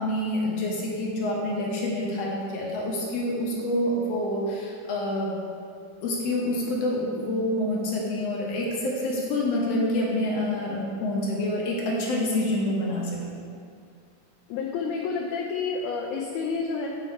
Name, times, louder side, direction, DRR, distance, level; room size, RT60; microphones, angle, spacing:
voice 1, 0.0-5.3 6.0-13.2, left 1 dB, 60° left, -3 dB, 2.0 m, -27 dB
voice 2, 14.5-16.9, left 5 dB, 80° left, -2 dB, 2.1 m, -29 dB
8.4 x 5.1 x 4.5 m, 2.3 s
omnidirectional pair, 3.5 m